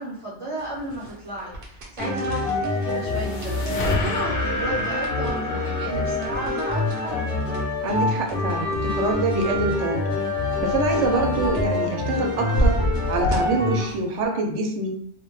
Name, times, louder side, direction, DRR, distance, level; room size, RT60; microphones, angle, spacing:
voice 1, 0.0-3.7 4.0-7.2, right 1 dB, 30° right, -10 dB, 0.7 m, -33 dB
sound 1, 0.6-14.3, right 1 dB, 60° right, 0.8 m, -32 dB
sound 2, 2.0-13.8, left 2 dB, 25° left, 0.8 m, -26 dB
sound 3, 2.6-7.9, left 2 dB, 60° left, 0.7 m, -32 dB
voice 2, 7.8-10.1 10.6-12.8 13.1-14.9, right 2 dB, 85° right, 2 dB, 0.9 m, -25 dB
2.2 x 2.1 x 3.0 m, 0.67 s
omnidirectional pair, 1.2 m